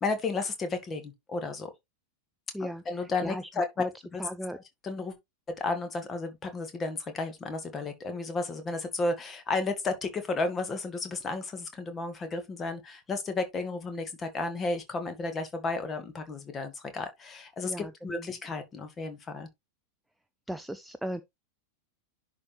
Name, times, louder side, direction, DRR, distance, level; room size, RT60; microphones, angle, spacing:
voice 1, 0.0-1.7 2.6-3.8 4.1-4.2 4.5-5.2 5.5-19.5, left 3 dB, 20° left, 1.8 m, -33 dB
voice 2, 2.5-3.9 4.2-4.6 17.6-18.3 20.5-21.2, equal, ahead, 0.5 m, -37 dB
10.5 x 4.4 x 3.3 m
figure-of-eight pair, 90°, 0 cm